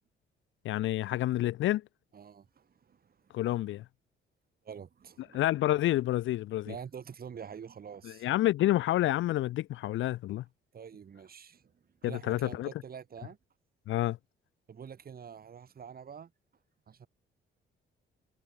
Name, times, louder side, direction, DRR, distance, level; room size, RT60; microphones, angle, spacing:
voice 1, 0.6-1.9 3.3-3.8 5.3-6.7 8.0-10.4 12.0-12.7 13.9-14.2, left 15 dB, 75° left, 0.7 m, -29 dB
voice 2, 2.1-3.4 4.6-5.4 6.6-8.3 10.7-11.7 12.0-13.4 14.7-16.3 16.9-17.1, right 7 dB, 50° right, 4.7 m, -46 dB
cardioid pair, 90°, 20 cm